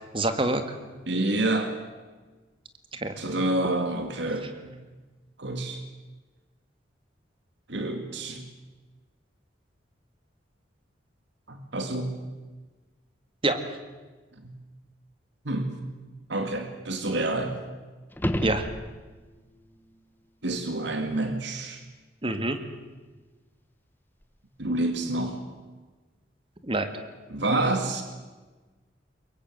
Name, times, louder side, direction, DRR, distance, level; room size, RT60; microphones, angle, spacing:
voice 1, 0.1-0.8 2.9-3.2 13.4-13.6 18.4-18.7 22.2-22.6 26.6-26.9, right 2 dB, 30° right, 8 dB, 2.0 m, -26 dB
voice 2, 1.1-1.8 3.2-4.8 5.4-5.8 7.7-8.5 11.5-12.2 14.4-14.5 15.4-15.7 16.3-17.6 20.4-21.8 24.6-25.5 27.3-28.0, right 2 dB, 70° right, 6 dB, 2.2 m, -28 dB
sound 1, 18.1-19.4 24.2-24.3, equal, 10° left, 1.2 m, -30 dB
23.5 x 22.0 x 8.0 m, 1.3 s
head